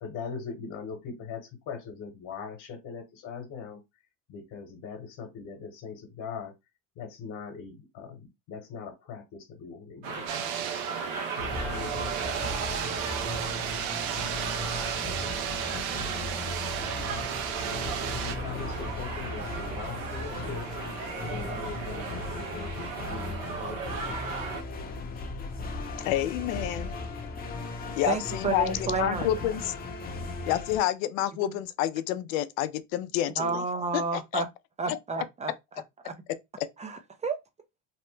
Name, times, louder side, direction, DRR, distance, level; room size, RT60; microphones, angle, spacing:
voice 1, 0.0-3.8 4.3-6.5 7.0-10.5 11.4-12.5 16.7-17.2 17.6-20.7 21.2-24.2, left 5 dB, 55° left, 1.1 m, -41 dB
sound 1, 10.0-24.6, right 5 dB, 90° right, 1.1 m, -37 dB
sound 2, 10.3-18.4, right 9 dB, 70° right, 0.6 m, -34 dB
sound 3, 11.4-30.8, left 3 dB, 25° left, 0.7 m, -37 dB
voice 2, 26.0-26.9 28.0-29.7 30.5-33.6 33.9-34.4 34.9-35.0 36.6-36.7, left 12 dB, 85° left, 0.5 m, -29 dB
voice 3, 28.1-29.3 33.4-34.5 34.8-35.5 36.0-36.1 36.8-37.4, right 4 dB, 20° right, 0.3 m, -30 dB
3.0 x 2.1 x 3.2 m
supercardioid pair, 100°, 39 cm